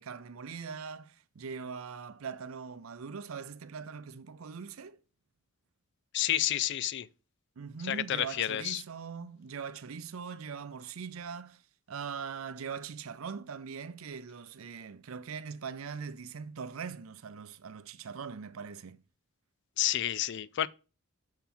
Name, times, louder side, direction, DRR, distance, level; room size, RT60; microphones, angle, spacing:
voice 1, 0.0-5.0 7.6-11.6 11.9-19.0, right 6 dB, 75° right, 0.5 m, -41 dB
voice 2, 6.1-7.1 7.9-8.8 19.8-20.7, left 12 dB, 55° left, 0.4 m, -30 dB
5.7 x 5.7 x 4.2 m
head